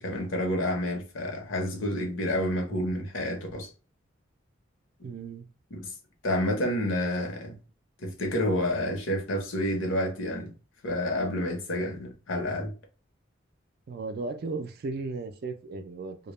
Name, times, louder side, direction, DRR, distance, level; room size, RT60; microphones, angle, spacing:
voice 1, 0.0-3.7 5.0-5.1 5.7-5.9 6.2-7.6 8.0-10.5 10.8-12.7, left 1 dB, 80° left, 0.8 m, -29 dB
voice 2, 5.0-5.5 13.9-16.2, right 3 dB, 50° right, 0.3 m, -35 dB
2.2 x 2.1 x 3.0 m
head